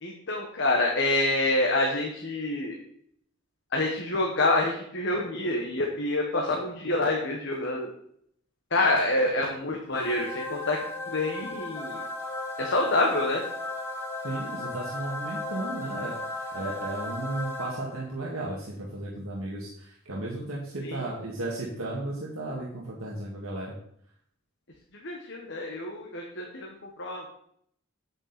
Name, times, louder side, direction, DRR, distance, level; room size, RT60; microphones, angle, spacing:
voice 1, 0.0-2.8 3.7-7.9 8.7-10.8 11.1-12.0 12.6-13.4 20.8-21.0 24.9-27.3, left 2 dB, 60° left, 0 dB, 1.4 m, -27 dB
sound 1, 9.9-18.2, left 2 dB, 10° left, 1.3 m, -35 dB
voice 2, 14.2-23.7, right 2 dB, 85° right, -4 dB, 2.0 m, -35 dB
8.9 x 8.6 x 4.2 m, 0.68 s
head